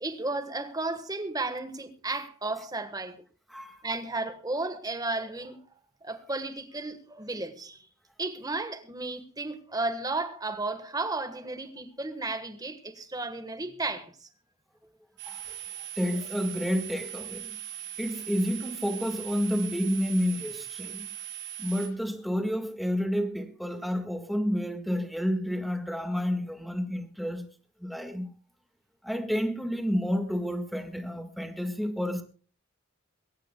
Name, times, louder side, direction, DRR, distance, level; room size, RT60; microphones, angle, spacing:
voice 1, 0.0-3.2 3.8-5.6 6.0-7.8 8.2-14.3, right 2 dB, 20° right, 1.3 m, -33 dB
sound 1, 15.2-21.9, right 11 dB, 55° right, 7.5 m, -40 dB
voice 2, 15.3-15.6 16.0-17.5 18.0-21.1 21.6-27.4 27.8-28.3 29.0-32.2, equal, ahead, 1.6 m, -30 dB
22.0 x 18.0 x 2.2 m
head